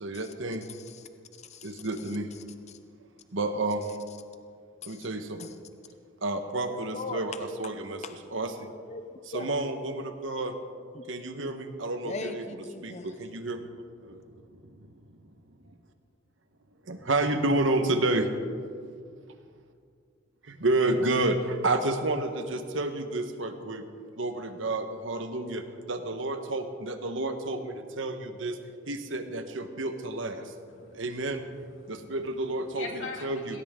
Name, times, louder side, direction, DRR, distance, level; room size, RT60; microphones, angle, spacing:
voice 1, 0.0-0.6 1.8-2.2 3.3-3.8 4.9-5.2 6.2-7.3 7.6-8.0 8.3-8.5 9.3-10.5 11.1-12.4 13.3-13.6 16.9-18.3 20.6-21.4 21.6-23.8 24.2-24.3 24.6-25.6 25.9-27.6 28.0-28.1 28.4-28.5 28.9-30.3 31.0-31.4 32.1-32.8 33.2-33.6, right 2 dB, 80° right, 7 dB, 1.4 m, -29 dB
voice 2, 0.6-1.1 1.4-2.8 4.8-5.1 5.4-5.6 6.6-7.4 8.0-8.1 8.9-9.5 10.9-11.0 12.0-13.3, left 3 dB, 35° left, 8 dB, 0.7 m, -41 dB
voice 3, 30.7-33.6, left 4 dB, 85° left, 0 dB, 3.3 m, -44 dB
19.5 x 18.0 x 3.8 m, 2.2 s
head